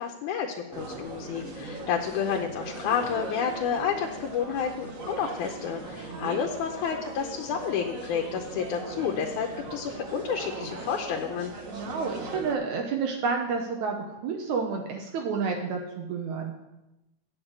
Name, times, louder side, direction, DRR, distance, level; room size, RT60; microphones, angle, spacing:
voice 1, 0.0-11.5, left 7 dB, 90° left, 2 dB, 2.2 m, -30 dB
sound 1, 0.7-12.5, right 2 dB, 60° right, 0.8 m, -39 dB
voice 2, 11.7-16.5, right 5 dB, 80° right, 2 dB, 2.3 m, -30 dB
8.8 x 5.8 x 8.0 m, 0.94 s
omnidirectional pair, 3.4 m